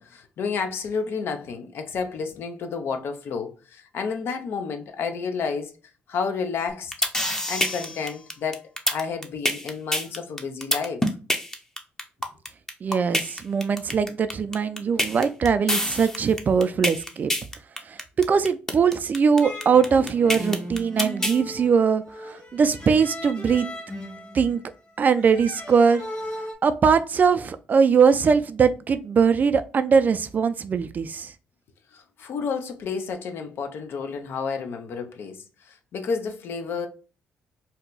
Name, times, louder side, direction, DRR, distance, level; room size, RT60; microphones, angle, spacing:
voice 1, 0.0-5.7 6.1-6.9 7.5-11.1 31.9-36.9, left 5 dB, 65° left, 0.6 m, -31 dB
sound 1, 6.7-21.4, left 1 dB, 10° left, 0.6 m, -26 dB
voice 2, 12.8-17.3 17.9-23.7 24.3-24.6 25.0-26.0 26.6-31.3, right 6 dB, 45° right, 0.3 m, -21 dB
sound 2, 19.4-26.5, equal, 30° left, 1.2 m, -37 dB
2.8 x 2.2 x 3.8 m
cardioid pair, 80°, 4 cm